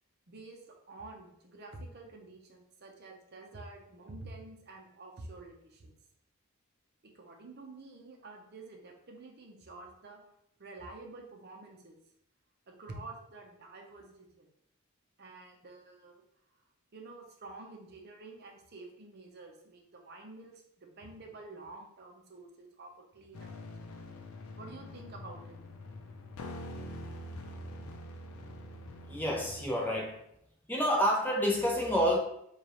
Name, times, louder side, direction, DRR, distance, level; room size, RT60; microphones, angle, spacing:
voice 1, 0.3-5.9 7.0-10.2 10.6-12.0 12.7-14.5 15.2-16.2 16.9-23.7 24.6-25.6, right 2 dB, 50° right, 1 dB, 0.6 m, -49 dB
sound 1, 23.3-29.7, left 1 dB, 80° left, 0.5 m, -45 dB
voice 2, 29.1-30.2 30.7-32.2, equal, 10° left, -2 dB, 0.5 m, -28 dB
5.0 x 2.4 x 2.9 m, 0.75 s
head